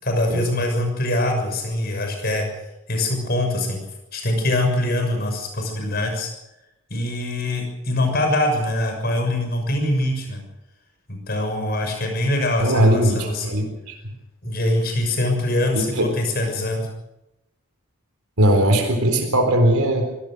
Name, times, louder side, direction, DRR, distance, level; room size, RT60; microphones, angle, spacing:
voice 1, 0.0-2.5 2.9-3.8 4.1-6.3 6.9-10.4 11.1-13.5 14.4-16.9, left 1 dB, 45° left, 3 dB, 6.6 m, -23 dB
voice 2, 12.6-14.1 15.7-16.1 18.4-20.1, right 1 dB, 90° right, 4 dB, 4.0 m, -19 dB
24.0 x 17.5 x 6.5 m, 0.90 s
head